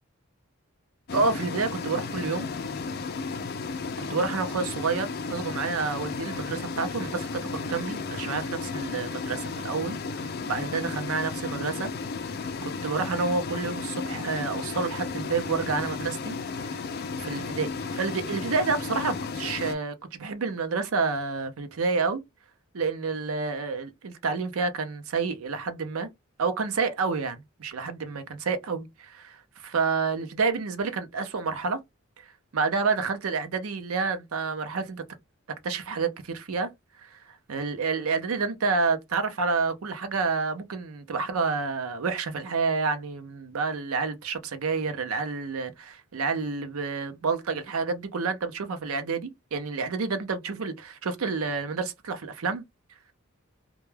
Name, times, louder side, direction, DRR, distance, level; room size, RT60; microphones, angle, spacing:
sound 1, 1.1-19.7, left 4 dB, 50° left, 0.4 m, -34 dB
voice 1, 1.1-2.5 4.1-7.3 7.5-11.9 12.8-16.4 16.7-16.8 17.2-22.2 22.7-26.1 26.4-31.8 32.5-35.0 35.6-36.7 37.0-37.2 37.5-52.6, right 4 dB, 85° right, 0.5 m, -29 dB
2.2 x 2.2 x 3.1 m
head